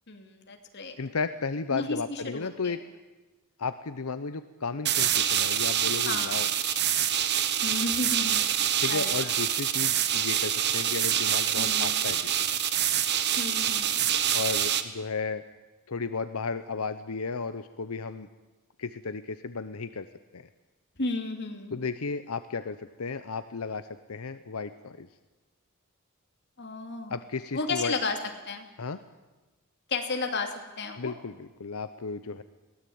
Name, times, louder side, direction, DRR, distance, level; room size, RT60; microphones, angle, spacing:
voice 1, 0.1-1.0 1.7-2.8 6.1-6.4 7.6-8.4 8.9-9.3 11.5-12.0 13.4-14.0 21.0-21.7 26.6-27.1 27.5-28.2 28.5-28.7 29.9-31.1, left 3 dB, 55° left, 4 dB, 2.7 m, -33 dB
voice 2, 1.0-2.8 3.6-6.5 8.8-12.2 12.5-12.6 14.3-15.4 15.9-18.3 18.8-20.1 20.3-20.5 21.7-25.1 27.1-27.9 28.8-29.0 31.0-32.4, left 4 dB, 90° left, 11 dB, 0.8 m, -34 dB
sound 1, 4.8-14.8, right 10 dB, 50° right, 1.2 m, -26 dB
22.5 x 17.0 x 8.7 m, 1.2 s
head